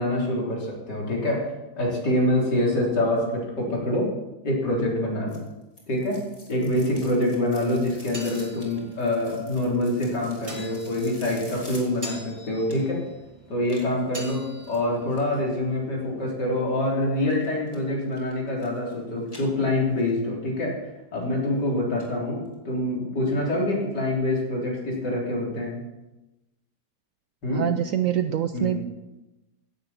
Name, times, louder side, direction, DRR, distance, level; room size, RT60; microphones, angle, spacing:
voice 1, 0.0-1.5 1.8-4.1 4.4-5.4 5.9-6.2 6.5-13.0 13.5-25.8 27.4-27.7 28.5-28.8, left 1 dB, 85° left, -3 dB, 4.1 m, -26 dB
sound 1, 5.3-13.1 13.6-15.4 17.3-17.8 18.1-18.9 19.2-20.1 20.5-20.6 21.2-21.3 21.6-21.7 22.0-22.1 22.5-22.6, left 1 dB, 20° left, 2.8 m, -48 dB
sound 2, 7.8-16.3, right 1 dB, 20° right, 1.7 m, -45 dB
voice 2, 27.5-28.8, right 11 dB, 70° right, 9 dB, 0.8 m, -25 dB
15.5 x 11.0 x 4.3 m, 1.0 s
omnidirectional pair, 1.8 m